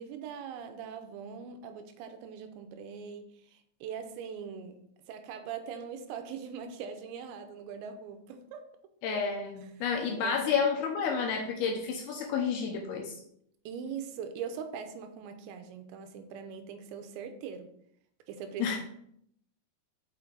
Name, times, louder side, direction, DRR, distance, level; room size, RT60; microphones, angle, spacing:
voice 1, 0.0-4.8 5.1-8.7 10.1-10.4 13.7-17.7 18.3-18.8, right 7 dB, 85° right, 7 dB, 3.0 m, -41 dB
voice 2, 9.0-13.2 18.6-18.8, left 6 dB, 80° left, 1 dB, 2.4 m, -30 dB
5.9 x 5.7 x 3.9 m, 0.71 s
omnidirectional pair, 5.1 m